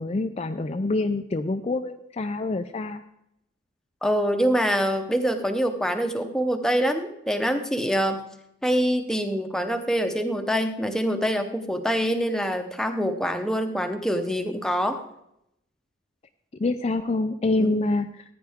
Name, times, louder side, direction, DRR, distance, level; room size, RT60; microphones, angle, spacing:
voice 1, 0.0-3.0 16.6-18.2, left 2 dB, 30° left, 7 dB, 0.4 m, -26 dB
voice 2, 4.0-8.2 8.6-15.0 17.6-17.8, equal, 5° left, 6 dB, 0.8 m, -25 dB
15.0 x 9.4 x 3.5 m, 0.79 s
head